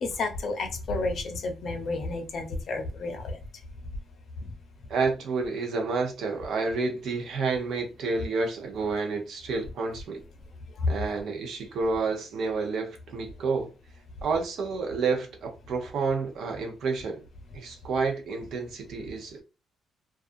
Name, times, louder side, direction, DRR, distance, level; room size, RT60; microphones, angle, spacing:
voice 1, 0.0-3.4 10.7-10.9, left 3 dB, 60° left, 0.7 m, -30 dB
voice 2, 4.9-10.2 10.9-13.7 14.2-17.2 17.5-19.4, right 4 dB, 70° right, 0.7 m, -29 dB
2.4 x 2.4 x 2.5 m
cardioid pair, 90°, 0 cm